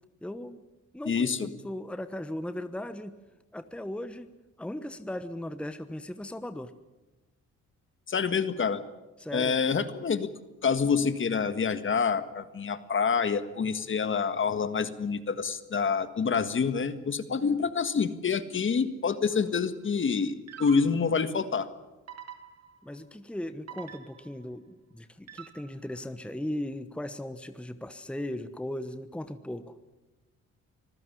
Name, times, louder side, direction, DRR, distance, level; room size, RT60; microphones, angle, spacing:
voice 1, 0.2-0.6 0.9-3.1 3.5-4.3 4.6-6.7 9.2-9.6 22.8-29.8, left 1 dB, 5° left, 11 dB, 1.1 m, -37 dB
voice 2, 1.1-1.5 8.1-8.8 9.3-10.3 10.6-20.3 20.6-21.7, left 5 dB, 40° left, 11 dB, 1.7 m, -27 dB
sound 1, 19.3-19.6 20.5-21.2 22.1-22.9 23.7-24.5 25.3-25.9, right 9 dB, 55° right, 2.4 m, -46 dB
25.5 x 15.0 x 9.9 m, 1.1 s
cardioid pair, 90°, 30 cm